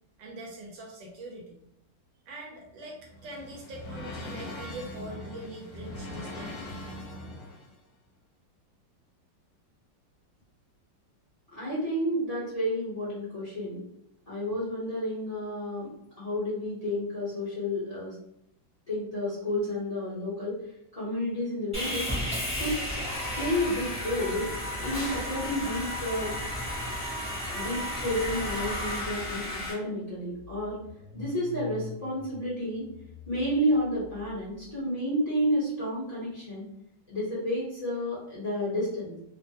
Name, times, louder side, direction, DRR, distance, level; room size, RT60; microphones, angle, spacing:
voice 1, 0.2-1.6 2.3-6.6, right 1 dB, 85° right, -1 dB, 1.3 m, -43 dB
sound 1, 2.7-7.8, left 1 dB, 70° left, 1.2 m, -41 dB
voice 2, 11.5-13.8 14.3-15.9 16.2-18.2 18.9-20.6 20.9-22.1 22.6-22.8 23.4-24.5 24.8-26.3 27.5-30.8 31.1-32.9 33.3-36.6 37.1-39.2, equal, 30° left, -9 dB, 0.7 m, -30 dB
Sawing, 21.7-29.7, left 1 dB, 5° right, 0.7 m, -33 dB
Car / Engine starting, 29.9-34.7, left 5 dB, 55° right, 1.2 m, -46 dB
3.1 x 2.1 x 2.7 m, 0.79 s
omnidirectional pair, 2.0 m